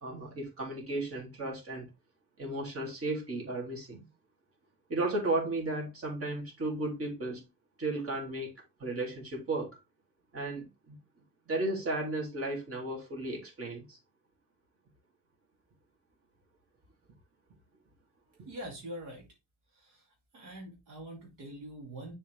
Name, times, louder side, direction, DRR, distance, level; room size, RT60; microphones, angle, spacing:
voice 1, 0.0-1.9 2.4-4.1 4.9-7.4 7.8-8.5 8.8-9.8 10.3-11.0 11.5-14.0, right 2 dB, 50° right, 2.8 m, -34 dB
voice 2, 18.5-19.3 19.7-20.0 20.3-22.1, right 1 dB, 90° right, 2.5 m, -44 dB
7.0 x 4.3 x 3.5 m
cardioid pair, 90°, 30 cm